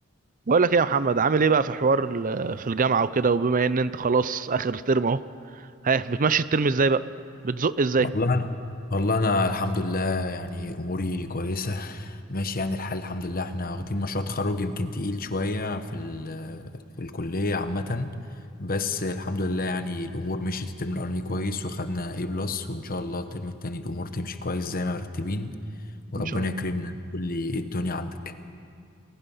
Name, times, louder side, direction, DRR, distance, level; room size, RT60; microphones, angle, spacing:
voice 1, 0.5-5.2 5.8-7.0 7.4-8.1 26.2-26.5, right 4 dB, 40° right, 15 dB, 0.6 m, -23 dB
voice 2, 8.0-8.5 8.9-16.7 17.0-18.1 18.6-25.6 26.1-28.3, left 2 dB, 45° left, 9 dB, 1.2 m, -29 dB
29.0 x 20.5 x 5.7 m, 2.3 s
head